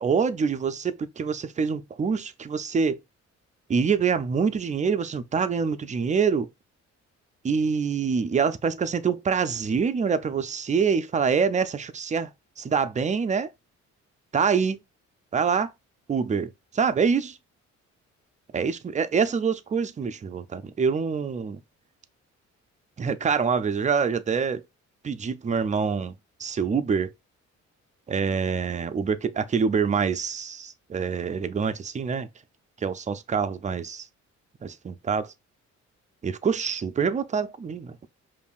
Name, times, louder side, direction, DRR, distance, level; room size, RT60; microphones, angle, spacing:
voice 1, 0.0-3.0 3.7-6.5 7.4-12.3 12.6-13.5 14.3-14.8 15.3-15.7 16.1-17.4 18.5-21.6 23.0-24.6 25.0-27.1 28.1-32.3 32.8-34.1 34.6-35.3 36.2-38.1, right 6 dB, 25° right, 0.4 m, -25 dB
5.2 x 2.6 x 2.4 m
cardioid pair, 90°, 30 cm